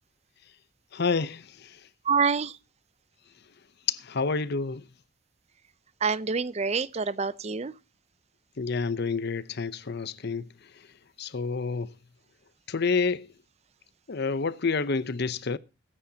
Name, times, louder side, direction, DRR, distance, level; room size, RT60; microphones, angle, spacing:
voice 1, 0.9-1.8 3.9-4.8 8.6-10.5 11.2-11.9 12.7-13.3 14.1-15.6, left 4 dB, 60° left, 0.7 m, -29 dB
voice 2, 2.0-2.6 6.0-7.7, right 5 dB, 35° right, 0.6 m, -26 dB
22.0 x 10.0 x 2.8 m
head